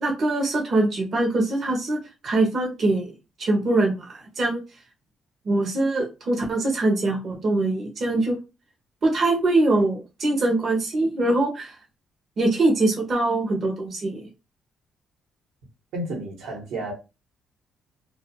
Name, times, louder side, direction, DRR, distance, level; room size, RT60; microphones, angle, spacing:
voice 1, 0.0-2.0 2.2-3.1 3.4-4.6 5.4-8.4 9.0-11.7 12.4-14.3, right 2 dB, 50° right, 0.7 m, -23 dB
voice 2, 15.9-16.9, right 1 dB, 90° right, 1.1 m, -31 dB
2.3 x 2.3 x 2.8 m
cardioid pair, 90°, 0 cm